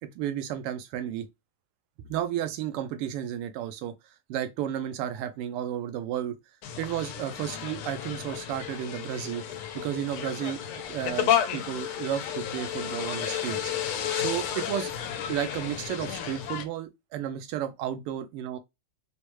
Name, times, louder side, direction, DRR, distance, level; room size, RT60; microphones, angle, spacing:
voice 1, 0.1-1.3 2.0-3.9 4.3-6.4 6.8-9.4 9.7-13.7 14.1-14.9 15.3-18.6, right 10 dB, 90° right, 1.6 m, -32 dB
sound 1, 6.6-16.6, left 10 dB, 80° left, 1.5 m, -32 dB
4.8 x 2.1 x 3.0 m
omnidirectional pair, 2.4 m